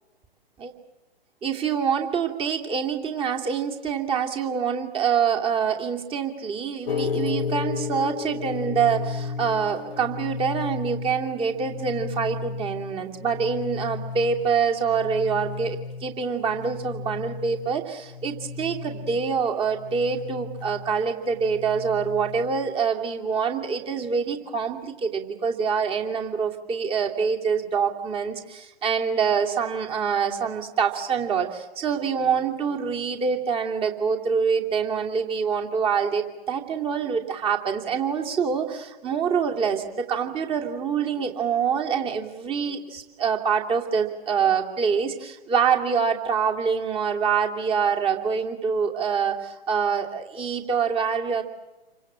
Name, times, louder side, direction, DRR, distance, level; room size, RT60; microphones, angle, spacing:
voice 1, 1.4-51.4, right 6 dB, 15° right, 3 dB, 2.7 m, -25 dB
sound 1, 6.9-22.7, left 5 dB, 60° left, 1.1 m, -34 dB
28.5 x 25.0 x 7.6 m, 1.1 s
figure-of-eight pair, 120°, 31 cm